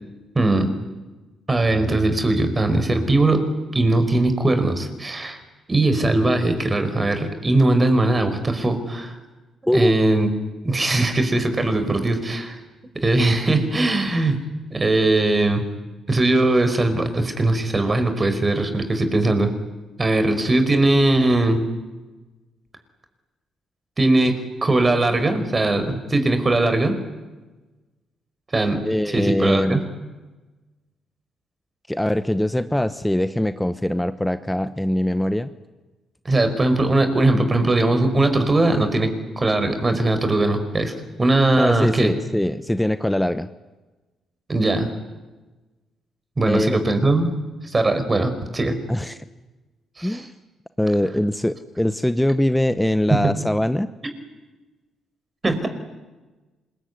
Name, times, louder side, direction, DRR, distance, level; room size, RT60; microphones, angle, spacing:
voice 1, 0.3-0.7 1.5-3.4 3.7-5.4 5.7-9.2 9.7-10.3 10.6-12.6 12.9-14.4 14.7-15.6 16.1-19.5 20.0-21.6 24.0-27.0 28.5-28.8 29.1-29.8 36.2-40.9 41.2-42.1 44.5-44.9 46.4-47.3 47.7-48.7 50.0-50.2 53.1-53.3 55.4-55.7, right 2 dB, 25° right, 8 dB, 4.9 m, -20 dB
voice 2, 28.8-29.9 31.9-35.5 41.6-43.5 46.5-46.8 48.9-49.2 50.0-50.3 50.8-53.9, left 1 dB, 5° left, 11 dB, 1.0 m, -22 dB
26.5 x 22.0 x 9.7 m, 1.2 s
cardioid pair, 90°, 0 cm